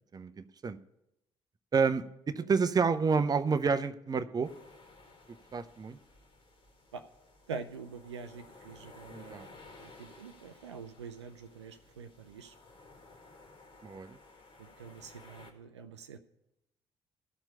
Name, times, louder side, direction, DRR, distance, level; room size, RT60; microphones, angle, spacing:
voice 1, 0.1-0.8 1.7-4.5 5.5-6.0 9.1-9.5 13.8-14.2, right 5 dB, 25° right, 11 dB, 0.6 m, -29 dB
sound 1, 4.4-15.5, left 3 dB, 40° left, 1.7 m, -56 dB
voice 2, 7.5-12.5 14.6-16.2, right 5 dB, 85° right, 7 dB, 0.4 m, -45 dB
13.0 x 4.5 x 8.6 m, 0.86 s
figure-of-eight pair, 45°, 14 cm